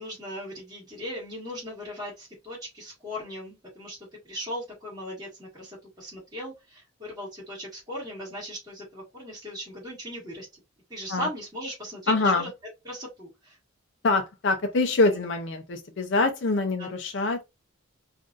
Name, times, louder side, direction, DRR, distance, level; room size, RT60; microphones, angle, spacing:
voice 1, 0.0-10.5 10.9-12.5 12.8-13.6 15.1-15.2 16.8-16.9, equal, 20° right, 1.9 m, -38 dB
voice 2, 12.1-12.5 14.0-17.4, left 3 dB, 55° left, 0.5 m, -24 dB
3.8 x 2.5 x 2.4 m
head